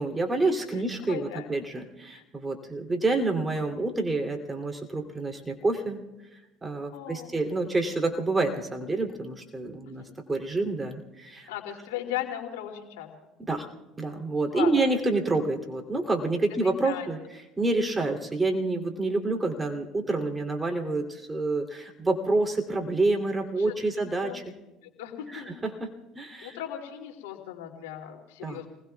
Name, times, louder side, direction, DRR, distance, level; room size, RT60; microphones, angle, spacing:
voice 1, 0.0-6.0 6.6-10.0 10.3-11.5 13.5-13.7 14.0-17.2 17.6-24.4 25.3-26.6 28.4-28.6, right 2 dB, 20° right, 3 dB, 2.9 m, -28 dB
voice 2, 1.0-1.5 2.1-2.2 6.9-7.3 10.0-10.1 11.5-13.1 14.5-14.7 16.6-17.1 23.6-24.4 25.0-25.5 26.4-28.7, left 12 dB, 85° left, 2 dB, 2.7 m, -37 dB
30.0 x 20.5 x 2.3 m, 1.1 s
supercardioid pair, 85°, 0 cm